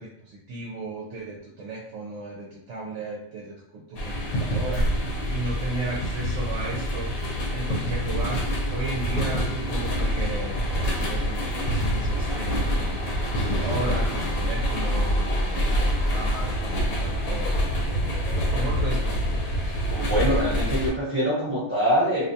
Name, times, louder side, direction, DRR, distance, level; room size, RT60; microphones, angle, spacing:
voice 1, 0.0-7.2 7.5-19.7, right 2 dB, 65° right, -3 dB, 0.8 m, -35 dB
sound 1, 4.0-20.9, equal, 85° left, 1.1 m, -26 dB
voice 2, 19.9-22.3, equal, 10° right, -8 dB, 0.8 m, -24 dB
2.5 x 2.2 x 2.6 m, 0.74 s
omnidirectional pair, 1.5 m